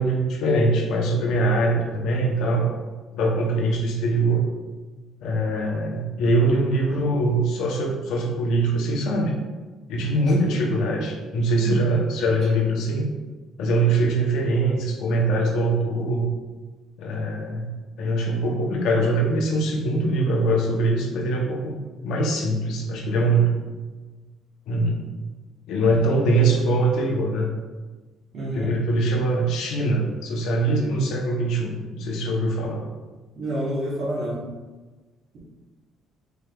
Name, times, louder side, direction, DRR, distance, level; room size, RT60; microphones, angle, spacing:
voice 1, 0.0-2.7 3.1-4.4 5.2-9.3 9.9-13.1 13.6-16.3 17.0-17.7 18.0-21.7 22.0-23.5 24.7-25.0 25.7-27.5 28.5-32.8, right 2 dB, 75° left, 0 dB, 0.6 m, -22 dB
voice 2, 28.3-28.7 33.4-34.4 35.3-35.4, right 1 dB, 45° right, -7 dB, 0.9 m, -28 dB
4.2 x 3.3 x 2.2 m, 1.3 s
cardioid pair, 125°, 0 cm